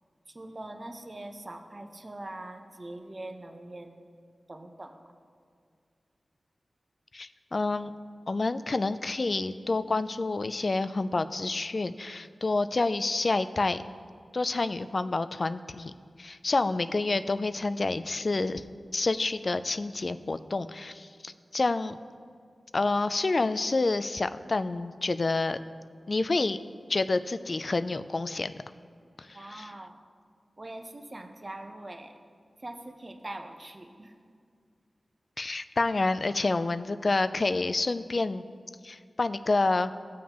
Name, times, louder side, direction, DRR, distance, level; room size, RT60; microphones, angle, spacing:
voice 1, 0.3-4.0 4.5-5.0 29.3-30.0 30.6-32.1 32.6-34.2, right 1 dB, 35° right, 5 dB, 0.9 m, -42 dB
voice 2, 7.1-7.9 8.3-13.8 14.3-15.9 16.2-18.6 18.9-22.0 22.7-25.6 26.1-26.6 26.9-28.6 29.2-29.7 35.4-38.4 38.8-39.9, left 3 dB, 50° left, 12 dB, 0.4 m, -28 dB
16.5 x 7.3 x 3.0 m, 2.1 s
wide cardioid pair, 60°, 0 cm